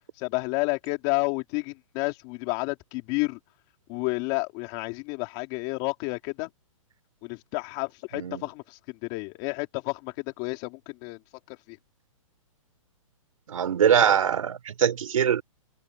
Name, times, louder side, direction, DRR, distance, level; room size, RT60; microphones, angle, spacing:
voice 1, 0.2-3.4 3.9-6.5 7.2-11.2 11.5-11.8, left 26 dB, 30° left, 3.8 m, -30 dB
voice 2, 13.5-15.4, right 8 dB, 75° right, 4.4 m, -22 dB
hypercardioid pair, 165°, 18 cm